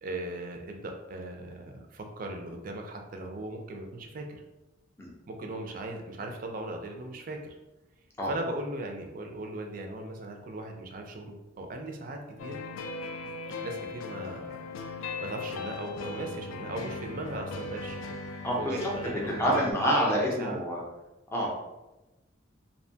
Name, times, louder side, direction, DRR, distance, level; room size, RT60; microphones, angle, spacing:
voice 1, 0.0-4.4 5.3-7.6 8.3-12.6 13.6-14.6 15.2-18.1 18.6-20.6, right 1 dB, 45° right, 3 dB, 0.4 m, -38 dB
sound 1, 12.4-19.7, left 3 dB, 90° left, 0.3 m, -38 dB
voice 2, 19.4-20.8 21.3-21.5, equal, 15° left, -3 dB, 0.5 m, -27 dB
2.6 x 2.1 x 2.6 m, 1.0 s
head